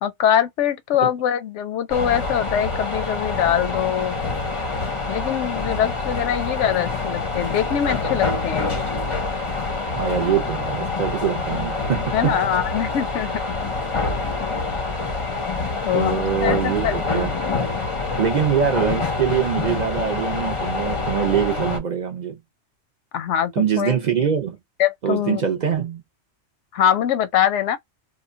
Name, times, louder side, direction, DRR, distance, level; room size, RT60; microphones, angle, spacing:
voice 1, 0.0-4.1 5.1-8.9 12.1-13.4 15.8-16.9 23.1-24.0 24.8-25.4 26.7-27.8, left 10 dB, 90° left, 0.9 m, -23 dB
sound 1, 1.9-21.8, left 3 dB, 35° left, 0.5 m, -26 dB
voice 2, 8.7-9.1 10.0-12.4 15.9-17.3 18.2-22.4 23.6-24.6 25.0-26.0, right 8 dB, 55° right, 0.5 m, -23 dB
3.0 x 2.1 x 2.5 m
omnidirectional pair, 1.2 m